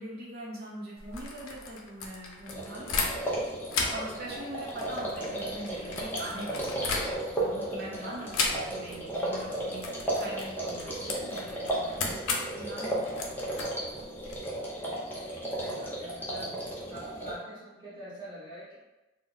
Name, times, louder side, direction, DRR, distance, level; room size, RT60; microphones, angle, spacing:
voice 1, 0.0-3.1 3.9-6.9 7.4-9.9 10.2-13.2, right 1 dB, 50° right, -4 dB, 0.7 m, -42 dB
sound 1, 1.0-3.4 3.7-7.5 8.3-9.0 9.3-9.5 9.8-14.4, left 4 dB, 80° left, 0.5 m, -35 dB
sound 2, 2.5-17.3, right 1 dB, 10° left, 0.5 m, -34 dB
voice 2, 15.6-16.6 16.9-18.8, right 1 dB, 20° right, -10 dB, 1.2 m, -44 dB
2.7 x 2.1 x 3.7 m, 1.1 s
head